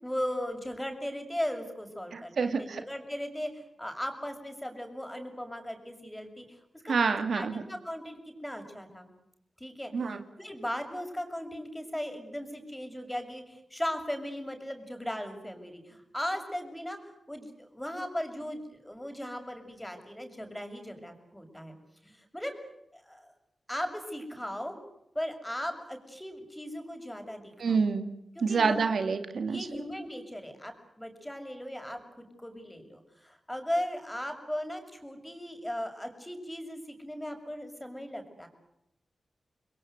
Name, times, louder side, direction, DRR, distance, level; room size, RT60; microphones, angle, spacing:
voice 1, 0.0-9.1 9.6-17.0 17.3-21.8 22.0-22.5 22.9-23.3 23.7-24.8 25.1-27.8 28.3-28.8 29.4-38.5, equal, 10° left, 6 dB, 6.7 m, -37 dB
voice 2, 2.1-2.8 6.9-7.6 9.9-10.2 27.6-28.1 28.4-29.7, right 5 dB, 80° right, 7 dB, 2.4 m, -27 dB
29.0 x 21.5 x 8.2 m, 0.82 s
cardioid pair, 55°, 0 cm